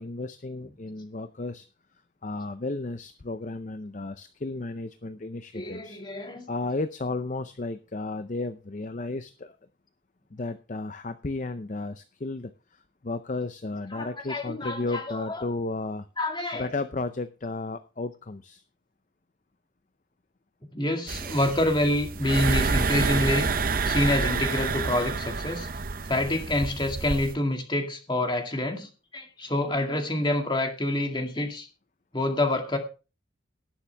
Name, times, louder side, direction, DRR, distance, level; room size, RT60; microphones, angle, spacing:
voice 1, 0.0-1.7 2.2-6.0 6.5-9.6 10.3-16.1 16.5-18.6, left 2 dB, 40° left, 10 dB, 0.6 m, -33 dB
voice 2, 5.5-6.5 13.9-15.2 16.2-16.7 20.7-23.5 23.9-25.7 26.1-31.7 32.1-32.8, left 1 dB, 25° left, 3 dB, 2.1 m, -27 dB
sound 1, 21.1-27.3, right 4 dB, 45° right, 0.6 m, -28 dB
18.5 x 7.1 x 3.4 m, 0.33 s
head